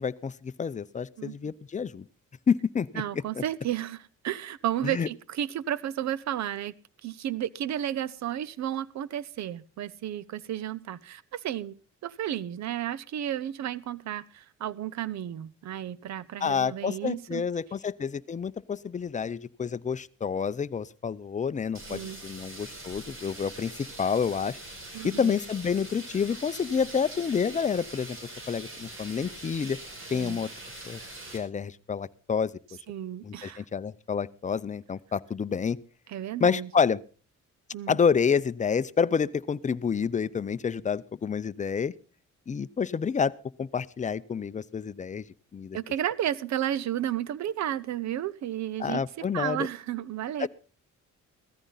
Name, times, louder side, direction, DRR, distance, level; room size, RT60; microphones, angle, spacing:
voice 1, 0.0-2.0 2.5-3.0 3.4-3.5 4.8-5.1 16.4-24.6 25.0-28.2 28.5-29.8 30.1-30.5 30.8-31.0 31.3-32.5 33.2-35.8 36.4-37.0 37.9-41.9 42.5-43.3 43.6-45.2 45.5-45.8 48.8-49.7 50.4-50.5, left 6 dB, 25° left, 15 dB, 0.6 m, -28 dB
voice 2, 1.2-1.5 3.0-6.7 7.0-17.4 21.9-22.2 24.9-25.4 30.1-30.4 32.9-33.6 36.1-36.7 37.7-38.0 45.7-50.5, right 11 dB, 65° right, 21 dB, 0.8 m, -33 dB
sound 1, 21.7-31.4, right 2 dB, 40° right, 5.2 m, -43 dB
15.5 x 14.0 x 4.0 m, 0.36 s
cardioid pair, 90°, 30 cm